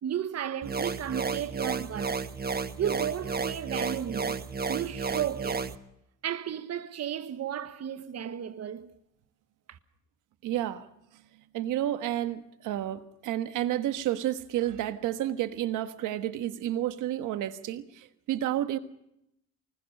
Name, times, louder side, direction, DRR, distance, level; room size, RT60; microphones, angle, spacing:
voice 1, 0.0-2.3 2.8-4.4 4.7-5.7 6.2-8.9 9.7-9.8, right 9 dB, 55° right, 1.3 m, -34 dB
sound 1, 0.6-5.7, right 5 dB, 30° right, 1.3 m, -32 dB
voice 2, 10.4-10.9 11.5-18.8, right 12 dB, 90° right, 1.4 m, -31 dB
24.5 x 21.0 x 5.4 m
cardioid pair, 90°, 30 cm